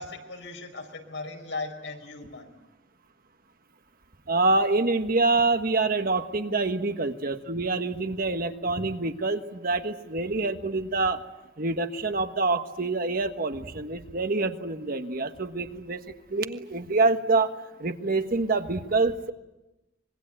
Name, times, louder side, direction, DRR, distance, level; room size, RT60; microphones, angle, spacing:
voice 1, 0.0-2.5, left 3 dB, 75° left, 5 dB, 5.0 m, -37 dB
voice 2, 4.3-11.2 11.6-16.0 16.3-17.5 17.8-19.3, right 3 dB, 50° right, 7 dB, 1.5 m, -26 dB
25.5 x 22.5 x 9.0 m, 0.98 s
head